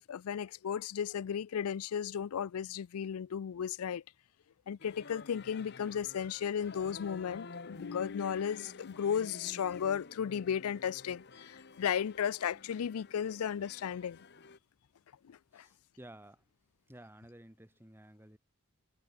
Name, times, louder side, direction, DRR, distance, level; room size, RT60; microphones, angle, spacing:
voice 1, 0.0-4.0 4.7-14.2 15.2-15.7, left 8 dB, 80° left, 0.4 m, -35 dB
sound 1, 4.8-14.6, left 3 dB, 50° left, 1.2 m, -50 dB
voice 2, 15.5-16.4 16.9-18.4, right 1 dB, 10° right, 1.6 m, -54 dB
head